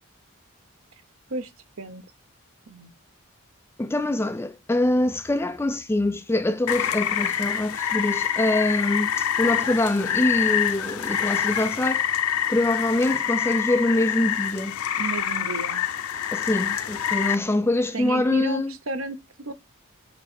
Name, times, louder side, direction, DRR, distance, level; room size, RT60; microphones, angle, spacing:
voice 1, 3.8-12.0 12.5-14.8 16.3-18.7, left 1 dB, 10° left, 0.3 m, -24 dB
Rain, 6.7-17.4, left 9 dB, 90° left, 0.6 m, -26 dB
voice 2, 15.0-15.8 17.9-19.5, right 2 dB, 80° right, 0.9 m, -32 dB
5.1 x 4.8 x 4.3 m
head